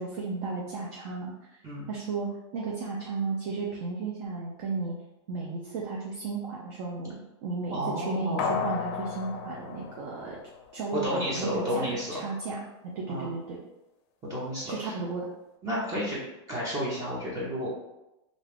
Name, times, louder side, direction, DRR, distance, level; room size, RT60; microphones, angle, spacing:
voice 1, 0.0-1.3 1.9-4.9 5.3-10.4 10.7-12.6 12.9-13.6 14.6-15.3, right 4 dB, 55° right, -3 dB, 0.6 m, -34 dB
voice 2, 7.7-8.6 10.9-12.2 13.1-13.3 14.3-14.9 15.6-16.2 16.5-17.7, equal, 20° right, -6 dB, 0.7 m, -31 dB
sound 1, 8.4-10.9 11.3-11.4, left 7 dB, 55° left, 0.4 m, -34 dB
2.5 x 2.3 x 3.4 m, 0.94 s
supercardioid pair, 135°, 16 cm